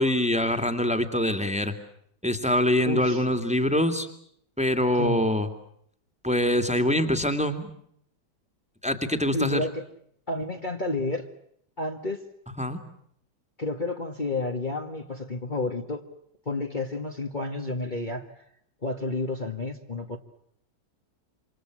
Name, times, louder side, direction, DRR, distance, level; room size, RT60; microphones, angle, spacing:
voice 1, 0.0-1.7 2.2-4.1 4.6-5.5 6.2-7.7 8.8-9.7 12.6-12.8, left 1 dB, 5° right, 7 dB, 2.5 m, -24 dB
voice 2, 2.9-3.2 5.0-5.2 9.3-9.7 10.3-11.3 11.8-12.2 13.6-16.0 16.5-18.3 18.8-20.2, left 2 dB, 25° left, 3 dB, 1.9 m, -30 dB
28.5 x 26.5 x 6.2 m, 0.70 s
omnidirectional pair, 1.9 m